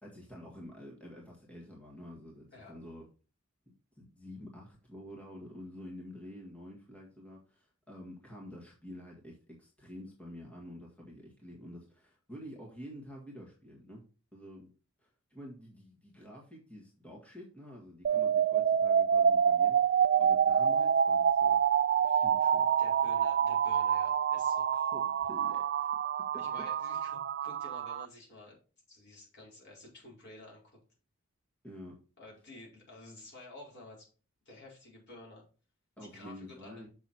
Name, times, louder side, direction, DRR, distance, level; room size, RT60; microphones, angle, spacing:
voice 1, 0.0-3.1 3.7-14.0 14.3-14.7 15.0-21.6 22.0-22.7 24.7-25.9 26.2-26.9 31.6-32.0 36.0-36.9, equal, 5° left, -3 dB, 1.7 m, -49 dB
sound 1, 18.0-28.0, right 8 dB, 45° right, 0.3 m, -27 dB
voice 2, 22.8-24.7 26.4-28.6 28.9-30.8 32.2-34.1 34.4-35.4 36.0-36.9, left 2 dB, 55° left, -2 dB, 4.7 m, -51 dB
7.2 x 6.1 x 4.2 m, 0.35 s
head